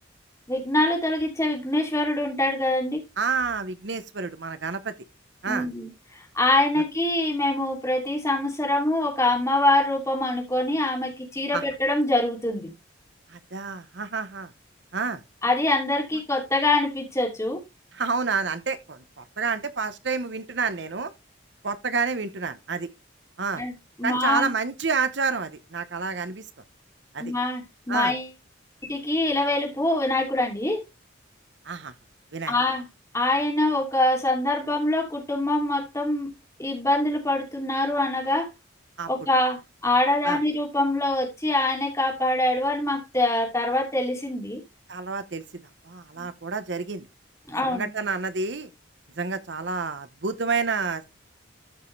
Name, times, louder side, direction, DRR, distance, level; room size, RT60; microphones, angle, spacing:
voice 1, 0.5-3.0 5.5-12.7 15.4-17.6 23.6-23.7 24.0-24.5 27.2-28.3 28.8-30.8 32.5-32.9 33.1-36.3 36.6-38.5 39.1-44.6 46.2-46.3 47.5-47.9, left 1 dB, 15° left, 2.7 m, -24 dB
voice 2, 3.2-4.9 5.4-5.7 11.5-11.7 13.3-14.5 14.9-15.2 17.9-21.1 21.6-22.9 23.4-23.6 24.0-26.5 27.1-27.3 27.9-28.2 31.6-31.9 32.3-32.6 39.0-39.1 40.2-40.4 44.9-47.1 47.6-48.7 49.2-51.0, right 4 dB, 60° right, 0.9 m, -29 dB
13.5 x 5.4 x 3.2 m
head